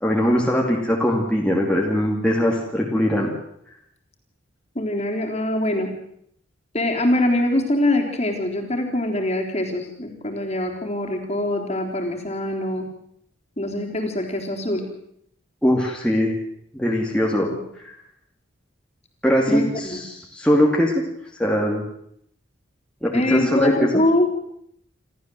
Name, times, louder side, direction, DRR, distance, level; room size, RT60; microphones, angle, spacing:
voice 1, 0.0-3.3 15.6-16.3 16.7-17.5 17.8-17.9 19.2-20.9 21.4-21.8 23.0-23.9, equal, 5° left, -2 dB, 2.6 m, -21 dB
voice 2, 4.8-5.9 6.7-12.9 13.6-14.8 19.5-20.0 23.1-24.4, left 1 dB, 30° left, 2 dB, 3.7 m, -23 dB
28.0 x 13.5 x 7.8 m, 0.72 s
head